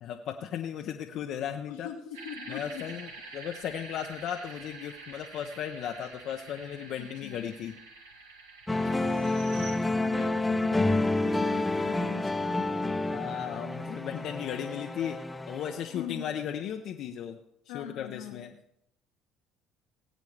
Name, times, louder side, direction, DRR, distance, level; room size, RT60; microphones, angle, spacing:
voice 1, 0.0-1.9 2.5-7.7 13.1-15.2 15.5-17.4 17.7-18.5, left 9 dB, 65° left, 3 dB, 0.8 m, -36 dB
voice 2, 1.7-2.9 7.0-7.5 8.7-9.3 9.9-12.6 15.9-16.3 17.7-18.5, left 9 dB, 80° left, 4 dB, 1.3 m, -42 dB
sound 1, 2.1-9.7, right 3 dB, 85° right, 1.5 m, -47 dB
sound 2, 8.7-16.2, left 2 dB, 10° left, 0.9 m, -29 dB
18.5 x 8.2 x 3.3 m, 0.76 s
hypercardioid pair, 65°, 0 cm